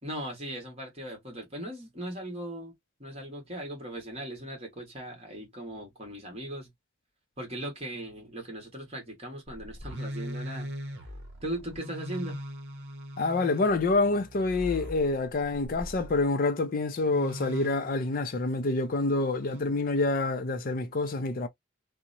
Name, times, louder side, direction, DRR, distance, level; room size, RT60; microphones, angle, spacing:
voice 1, 0.0-2.7 3.0-6.7 7.4-10.7 11.4-12.4, right 1 dB, 30° right, 1.3 m, -38 dB
sound 1, 9.5-16.3 17.1-18.1 19.4-19.6, equal, 60° right, 0.8 m, -40 dB
voice 2, 13.2-21.5, left 3 dB, 45° left, 0.5 m, -27 dB
2.8 x 2.1 x 2.5 m
head